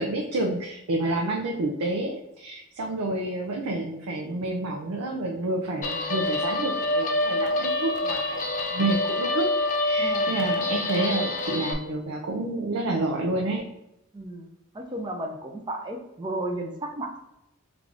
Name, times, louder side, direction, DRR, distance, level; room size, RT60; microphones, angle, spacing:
voice 1, 0.0-8.4 8.7-9.5 9.8-13.6, right 2 dB, 90° right, 1 dB, 0.5 m, -29 dB
Guitar, 5.8-11.7, left 1 dB, 35° left, 0.4 m, -26 dB
voice 2, 10.0-10.4 14.1-14.5 14.7-17.2, right 1 dB, 20° right, 3 dB, 0.4 m, -33 dB
3.4 x 2.5 x 3.4 m, 0.87 s
head